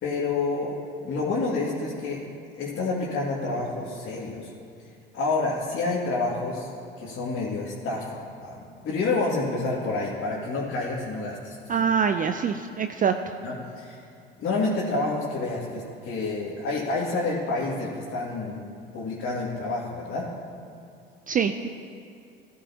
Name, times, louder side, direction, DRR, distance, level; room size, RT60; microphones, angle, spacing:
voice 1, 0.0-0.7 1.0-2.2 2.6-4.5 5.1-6.7 7.0-11.9 13.4-14.0 14.4-18.6 18.9-20.3, left 3 dB, 45° left, -6 dB, 2.4 m, -28 dB
voice 2, 11.7-13.1 21.3-21.7, right 7 dB, 30° right, 8 dB, 0.5 m, -24 dB
17.5 x 11.0 x 2.9 m, 2.5 s
hypercardioid pair, 65°, 30 cm